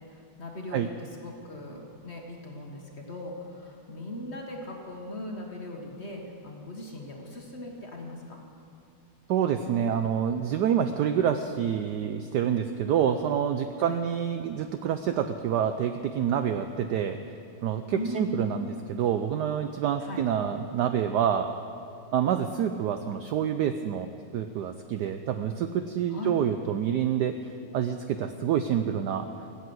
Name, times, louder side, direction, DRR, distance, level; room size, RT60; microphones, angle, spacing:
voice 1, 0.4-8.4 13.8-14.0 17.9-18.4 20.0-20.2 26.1-26.3, left 1 dB, 35° left, 1 dB, 1.4 m, -39 dB
voice 2, 9.3-17.2 17.6-21.5 22.1-27.3 27.7-29.3, right 8 dB, 75° right, 8 dB, 0.9 m, -27 dB
16.0 x 8.2 x 7.8 m, 2.6 s
omnidirectional pair, 2.2 m